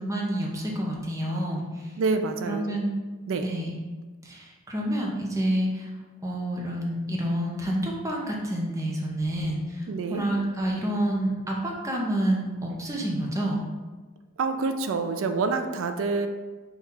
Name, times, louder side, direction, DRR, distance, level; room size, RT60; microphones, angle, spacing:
voice 1, 0.0-1.9 2.4-3.0 3.4-3.8 4.2-5.9 6.2-9.9 10.1-13.6, right 1 dB, 15° right, -2 dB, 0.6 m, -28 dB
voice 2, 2.0-2.8 3.3-3.5 9.9-10.2 14.4-16.3, right 4 dB, 65° right, 7 dB, 0.4 m, -27 dB
4.1 x 2.3 x 3.7 m, 1.3 s
head